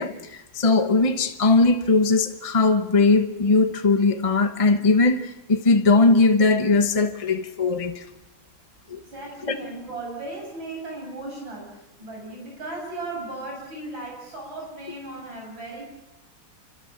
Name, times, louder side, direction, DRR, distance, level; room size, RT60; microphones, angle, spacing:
voice 1, 0.0-8.0 8.9-9.0 9.4-9.5, left 3 dB, 25° left, 6 dB, 0.8 m, -20 dB
voice 2, 9.1-15.8, right 2 dB, 65° right, -1 dB, 7.4 m, -36 dB
27.0 x 25.5 x 7.4 m, 1.0 s
omnidirectional pair, 2.2 m